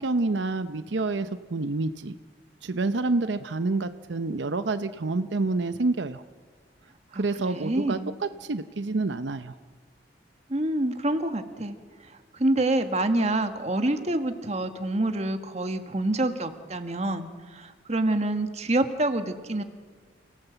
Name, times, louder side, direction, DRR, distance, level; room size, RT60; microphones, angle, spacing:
voice 1, 0.0-2.2 2.6-6.2 7.1-8.0 8.4-9.5, right 3 dB, 85° right, 10 dB, 0.7 m, -28 dB
voice 2, 7.1-8.1 10.5-11.8 12.0-19.6, right 1 dB, 40° right, 7 dB, 1.6 m, -27 dB
29.0 x 17.5 x 8.1 m, 1.5 s
head